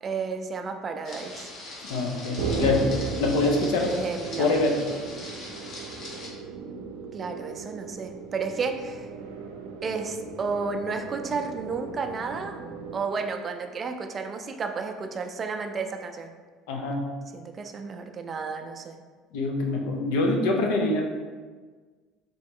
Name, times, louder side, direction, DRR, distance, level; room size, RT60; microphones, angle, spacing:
voice 1, 0.0-1.5 3.8-4.5 7.1-9.1 9.8-12.6 12.9-16.3 17.3-19.0, right 4 dB, 35° right, 5 dB, 0.4 m, -32 dB
sound 1, 1.0-6.3, left 2 dB, 50° left, 1.0 m, -41 dB
voice 2, 1.9-2.9 3.2-4.1 4.4-4.8 16.7-17.1 19.3-21.0, left 2 dB, 80° left, 1 dB, 0.7 m, -25 dB
sound 2, 2.4-13.0, right 4 dB, 90° right, 0.5 m, -36 dB
3.8 x 3.0 x 3.7 m, 1.5 s
supercardioid pair, 110°, 0 cm